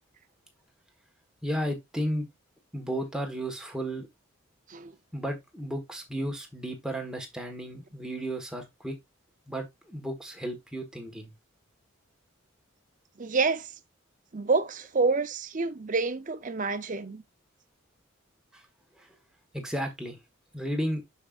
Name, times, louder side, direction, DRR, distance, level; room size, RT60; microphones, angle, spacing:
voice 1, 1.4-2.3 2.7-4.1 5.1-9.0 9.5-11.3 18.5-18.6 19.0-19.1 19.5-20.2 20.5-21.0, equal, 5° right, 1.4 m, -33 dB
voice 2, 13.2-13.7 14.3-17.2, right 4 dB, 35° right, 0.6 m, -28 dB
6.6 x 6.5 x 2.5 m
head